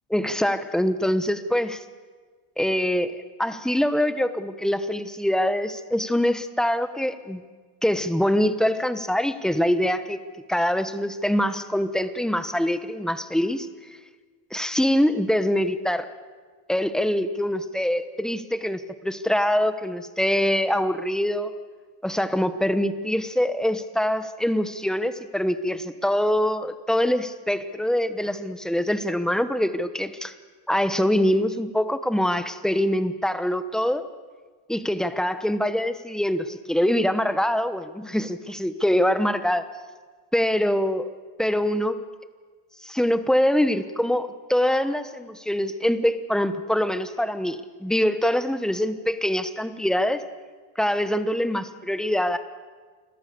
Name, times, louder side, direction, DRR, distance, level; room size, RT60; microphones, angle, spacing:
voice 1, 0.1-1.8 2.6-3.1 3.4-7.4 7.8-10.2 10.5-13.7 14.5-16.1 16.7-21.5 22.0-30.3 30.7-34.1 34.7-39.7 40.3-41.1 41.4-42.0 42.8-50.2 50.8-52.4, equal, ahead, 11 dB, 1.1 m, -24 dB
28.5 x 22.0 x 6.9 m, 1.5 s
cardioid pair, 145°, 41 cm